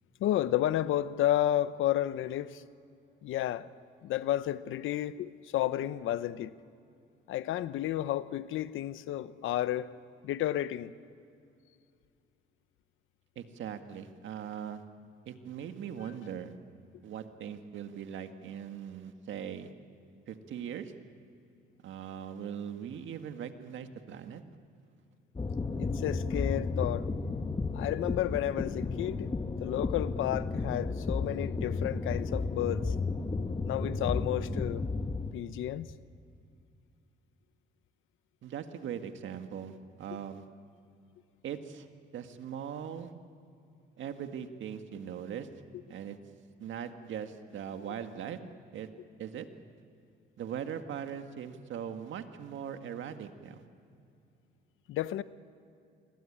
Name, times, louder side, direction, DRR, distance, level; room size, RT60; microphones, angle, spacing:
voice 1, 0.2-2.6 3.2-3.7 4.0-6.5 7.3-9.9 10.2-10.9 25.8-27.1 27.7-29.3 29.6-32.9 33.6-34.8 35.3-35.9 54.9-55.2, left 12 dB, 85° left, 0.9 m, -31 dB
voice 2, 13.4-14.8 15.3-16.5 17.0-19.7 20.3-20.9 21.8-24.4 38.4-40.4 41.4-41.9 42.1-43.1 44.0-45.5 45.9-46.2 46.6-48.4 48.7-48.9 49.2-49.5 50.4-53.6, right 8 dB, 75° right, 1.8 m, -40 dB
sound 1, 25.4-35.3, left 3 dB, 25° left, 1.4 m, -33 dB
28.0 x 23.5 x 8.7 m
cardioid pair, 90°, 20 cm